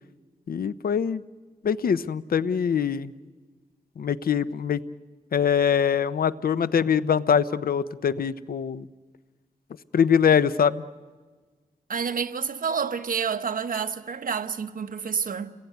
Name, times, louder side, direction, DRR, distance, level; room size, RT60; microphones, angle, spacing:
voice 1, 0.5-1.2 1.6-3.1 4.0-4.8 5.3-8.9 9.9-10.8, left 7 dB, 80° left, 0.8 m, -23 dB
voice 2, 11.9-15.5, right 6 dB, 70° right, 1.3 m, -29 dB
29.5 x 21.0 x 9.4 m
wide cardioid pair, 100°, 15 cm